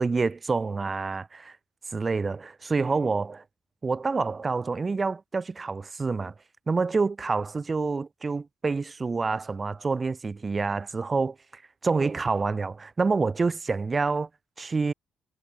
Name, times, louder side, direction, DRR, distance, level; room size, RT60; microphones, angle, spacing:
voice 1, 0.0-1.6 1.9-3.4 3.8-6.3 6.7-14.3 14.6-14.9, right 4 dB, 30° right, 0.4 m, -27 dB
cardioid pair, 90°, 0 cm